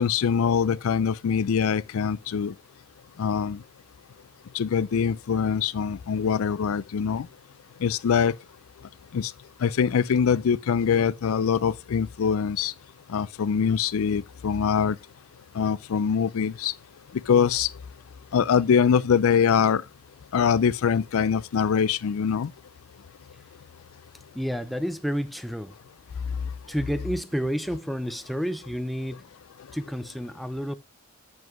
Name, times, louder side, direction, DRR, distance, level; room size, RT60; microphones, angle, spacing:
voice 1, 0.0-2.5 3.2-3.6 4.5-7.3 7.8-8.4 9.1-9.3 9.6-12.7 13.1-15.0 15.6-16.7 17.3-17.7 18.3-19.8 20.3-22.5, left 7 dB, 80° left, 0.4 m, -23 dB
voice 2, 24.3-25.8 26.7-29.2 29.7-30.7, equal, ahead, 0.3 m, -30 dB
7.9 x 7.2 x 3.0 m
head